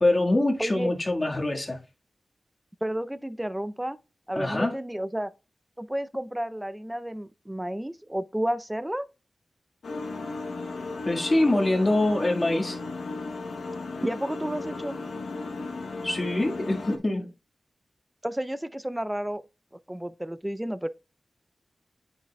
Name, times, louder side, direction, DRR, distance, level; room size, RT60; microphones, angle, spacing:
voice 1, 0.0-1.8 4.3-4.8 11.1-12.8 16.0-17.3, left 1 dB, 30° left, 1.6 m, -24 dB
voice 2, 0.6-0.9 2.8-4.0 4.3-5.3 5.8-9.0 14.0-15.0 18.2-19.4 19.9-20.9, right 1 dB, 10° right, 0.5 m, -31 dB
sound 1, 9.8-17.0, left 3 dB, 80° left, 0.8 m, -35 dB
8.8 x 5.9 x 2.2 m
wide cardioid pair, 70°, 0 cm